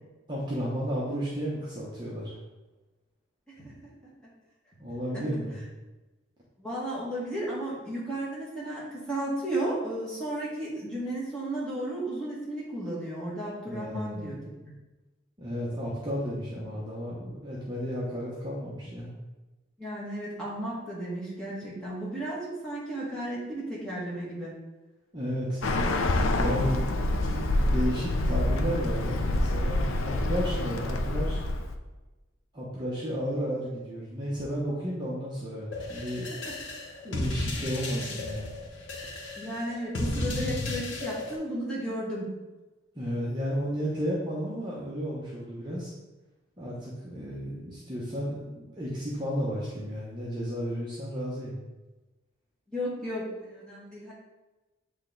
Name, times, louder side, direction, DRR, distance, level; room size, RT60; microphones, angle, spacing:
voice 1, 0.3-2.3 4.8-5.6 13.7-14.4 15.4-19.1 25.1-25.7 26.4-31.4 32.5-36.3 37.0-38.5 42.9-45.9 46.6-51.6, equal, 20° right, -6 dB, 0.9 m, -33 dB
voice 2, 3.5-3.9 5.1-5.2 6.6-14.8 19.8-24.5 36.5-36.6 39.4-42.3 52.7-54.1, right 1 dB, 5° left, -8 dB, 1.8 m, -34 dB
Bird, 25.6-31.8, left 1 dB, 90° left, 0.6 m, -27 dB
sound 1, 35.7-41.4, left 2 dB, 70° left, 1.0 m, -34 dB
8.0 x 3.3 x 3.9 m, 1.1 s
head